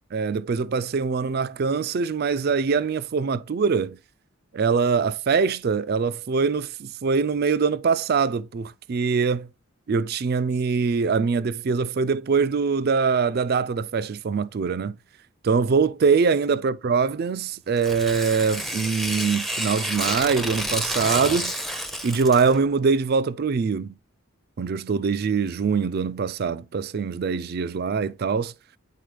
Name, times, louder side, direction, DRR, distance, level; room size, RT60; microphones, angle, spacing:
voice 1, 0.1-4.0 4.5-9.5 9.9-15.0 15.4-21.6 22.0-24.0 24.6-28.5, right 5 dB, 45° right, 0.3 m, -23 dB
Tearing, 17.8-22.6, equal, ahead, 0.6 m, -30 dB
10.0 x 4.1 x 3.3 m
head